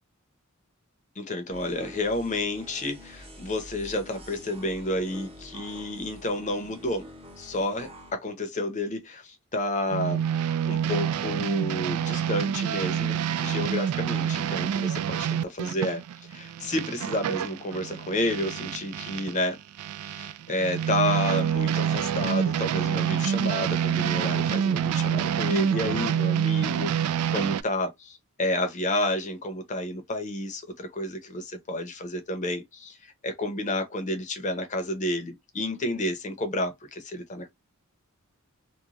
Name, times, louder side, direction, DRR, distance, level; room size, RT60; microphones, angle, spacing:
voice 1, 1.2-7.1 7.4-10.3 10.6-16.0 16.3-19.6 20.0-37.5, left 1 dB, 35° left, 0.7 m, -30 dB
sound 1, 1.5-8.1, equal, 25° right, 0.7 m, -46 dB
sound 2, 9.9-19.4 19.8-27.6, right 8 dB, 85° right, 0.3 m, -27 dB
3.0 x 2.2 x 2.5 m
head